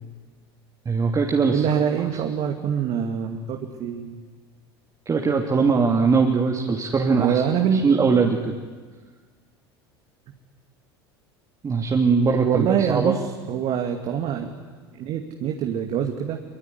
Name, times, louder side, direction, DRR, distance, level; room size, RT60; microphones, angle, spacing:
voice 1, 0.8-1.6 5.1-7.4 7.7-8.6 11.6-13.2, right 5 dB, 25° right, 1 dB, 2.8 m, -21 dB
voice 2, 1.5-4.2 7.2-7.8 12.3-13.2 13.5-14.5 14.9-16.4, right 8 dB, 50° right, 3 dB, 2.5 m, -24 dB
25.5 x 24.0 x 9.6 m, 1.4 s
hypercardioid pair, 80°, 13 cm